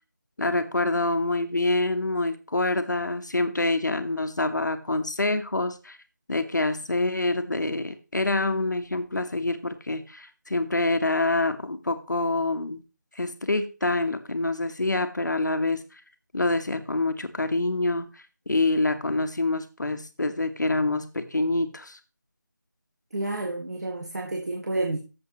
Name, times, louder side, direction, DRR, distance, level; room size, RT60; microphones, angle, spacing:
voice 1, 0.4-6.0 6.3-12.8 13.1-15.8 16.3-22.0, left 2 dB, 65° left, 9 dB, 1.4 m, -26 dB
voice 2, 23.1-25.0, right 2 dB, 55° right, 1 dB, 1.9 m, -30 dB
12.5 x 7.6 x 3.1 m, 0.32 s
figure-of-eight pair, 170°, 10 cm